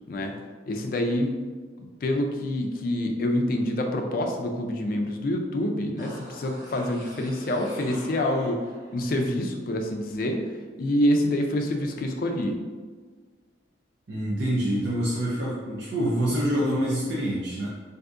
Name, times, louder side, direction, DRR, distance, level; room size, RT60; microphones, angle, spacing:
voice 1, 0.7-1.5 1.8-8.6 8.9-10.4 10.8-12.6, left 1 dB, 50° left, 3 dB, 0.4 m, -26 dB
sound 1, 6.0-9.0 9.3-9.4, equal, 15° right, 0.9 m, -44 dB
voice 2, 14.1-17.7, equal, 80° right, -7 dB, 0.6 m, -26 dB
3.6 x 2.6 x 2.4 m, 1.5 s
head